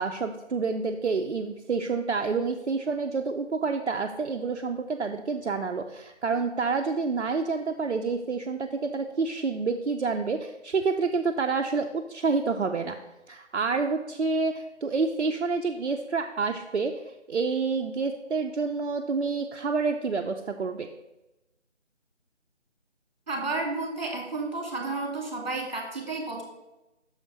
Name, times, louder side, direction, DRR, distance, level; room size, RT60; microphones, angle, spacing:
voice 1, 0.0-13.0 13.3-20.9, right 4 dB, 65° right, 4 dB, 0.6 m, -28 dB
voice 2, 23.3-26.4, right 3 dB, 35° right, 1 dB, 2.2 m, -31 dB
6.4 x 5.0 x 5.2 m, 0.97 s
figure-of-eight pair, 160°, 36 cm